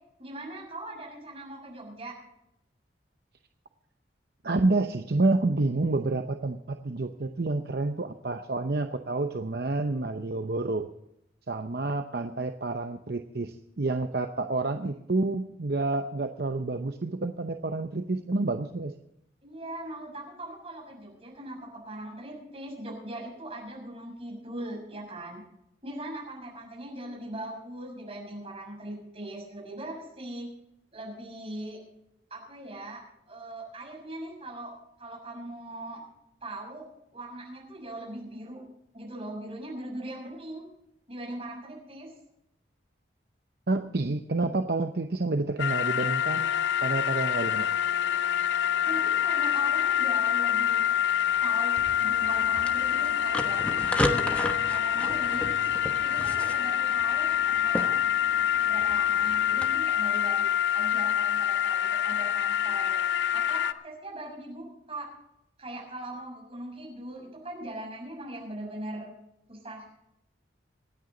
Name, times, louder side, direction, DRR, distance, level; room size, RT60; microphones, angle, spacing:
voice 1, 0.2-2.2 19.4-25.4 25.8-30.5 30.9-31.8 32.3-36.0 36.4-36.8 37.1-38.6 38.9-40.7 41.1-42.1 48.8-50.9 51.4-55.5 56.0-58.0 58.6-63.0 63.3-65.1 65.6-69.1 69.5-69.9, right 1 dB, 30° right, -1 dB, 6.7 m, -40 dB
voice 2, 4.4-10.9 11.5-18.9 43.7-46.5 46.8-47.7, right 2 dB, 60° right, 6 dB, 0.8 m, -29 dB
sound 1, 45.6-63.7, left 10 dB, 85° left, 0.7 m, -26 dB
sound 2, 51.8-59.7, left 1 dB, 5° left, 1.1 m, -35 dB
26.5 x 9.6 x 3.9 m, 0.80 s
head